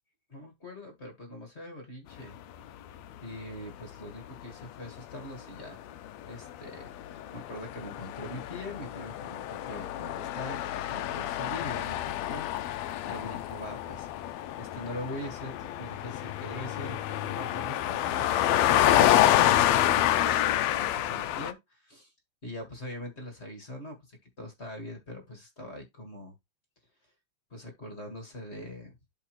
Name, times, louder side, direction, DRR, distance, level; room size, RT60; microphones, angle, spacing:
voice 1, 0.3-2.4 3.2-5.8 6.2-10.6 10.8-14.1 14.6-22.1 22.4-26.3 27.5-28.9, left 1 dB, 30° left, 1.5 m, -42 dB
sound 1, 2.7-3.0 3.7-3.8 4.1-21.5, left 13 dB, 75° left, 1.7 m, -28 dB
12.0 x 4.0 x 3.1 m
omnidirectional pair, 3.3 m